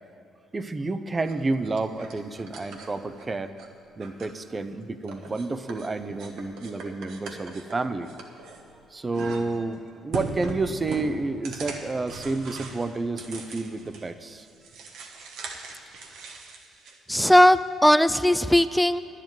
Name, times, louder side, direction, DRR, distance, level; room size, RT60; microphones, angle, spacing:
voice 1, 0.5-3.6 4.0-8.1 8.9-14.5, right 3 dB, 30° right, 11 dB, 0.7 m, -30 dB
sound 1, 1.2-3.7 4.0-4.7 5.0-8.8 9.1-9.7 10.1-14.1 14.4-17.0, right 4 dB, 75° right, 1.3 m, -40 dB
voice 2, 17.1-19.0, left 1 dB, 5° left, 14 dB, 0.5 m, -18 dB
10.5 x 7.5 x 9.1 m, 2.9 s
supercardioid pair, 70°, 0 cm